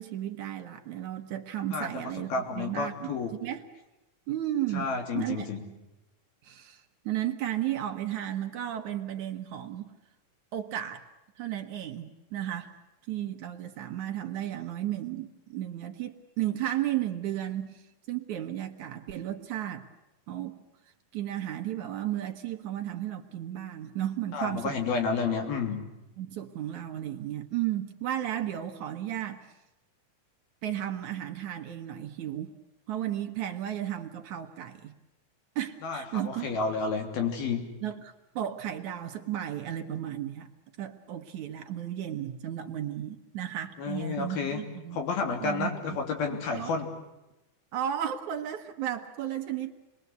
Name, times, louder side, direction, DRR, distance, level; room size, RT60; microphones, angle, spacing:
voice 1, 0.0-3.1 3.4-3.6 4.3-4.9 5.1-5.5 6.4-9.9 10.5-11.0 11.4-12.7 13.1-19.9 20.3-20.6 21.1-24.8 26.2-29.5 30.6-32.5 32.9-34.9 35.6-36.6 37.8-40.5 40.8-45.0 45.4-46.0 46.5-46.7 47.7-49.7, right 12 dB, 65° right, 6 dB, 2.3 m, -34 dB
voice 2, 1.7-2.0 2.3-3.3 4.7-5.6 24.3-25.9 35.8-37.7 43.8-44.6 44.9-46.9, left 4 dB, 85° left, 4 dB, 5.1 m, -30 dB
28.5 x 21.5 x 8.2 m, 0.98 s
omnidirectional pair, 4.2 m